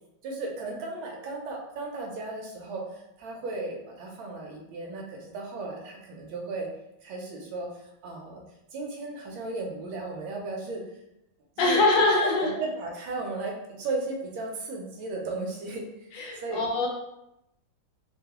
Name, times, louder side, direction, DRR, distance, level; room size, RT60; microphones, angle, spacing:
voice 1, 0.2-6.7 7.0-7.7 8.0-8.4 8.7-10.8 11.6-11.8 12.2-12.3 12.5-15.8 16.1-16.6, right 3 dB, 75° right, 0 dB, 1.4 m, -35 dB
voice 2, 11.6-12.5 16.1-16.9, left 2 dB, 70° left, -1 dB, 1.3 m, -23 dB
3.4 x 2.2 x 2.8 m, 0.86 s
omnidirectional pair, 2.3 m